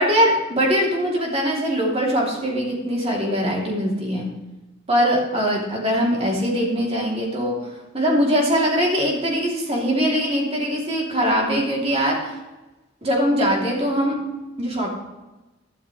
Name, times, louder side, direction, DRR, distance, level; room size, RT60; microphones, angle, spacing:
voice 1, 0.0-4.3 4.9-7.6 7.9-12.3 13.0-14.2 14.6-14.9, equal, 30° right, -2 dB, 3.1 m, -21 dB
12.0 x 12.0 x 3.3 m, 1.1 s
head